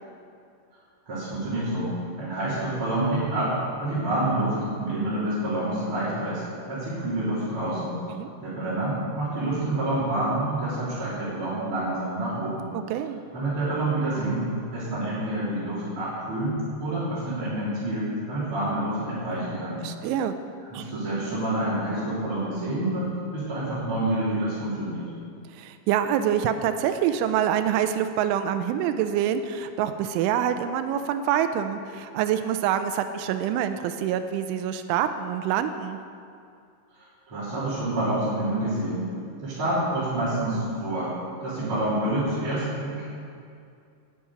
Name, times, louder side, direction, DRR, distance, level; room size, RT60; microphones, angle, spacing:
voice 1, 1.1-8.0 8.4-12.6 13.3-14.4 14.7-19.8 20.7-25.1 37.3-39.1 39.4-41.2 41.4-43.0, right 1 dB, 30° right, -11 dB, 4.0 m, -28 dB
voice 2, 12.7-13.2 19.8-20.4 20.7-20.9 25.6-36.0, right 9 dB, 90° right, 9 dB, 3.1 m, -26 dB
10.5 x 8.6 x 9.3 m, 2.4 s
omnidirectional pair, 5.5 m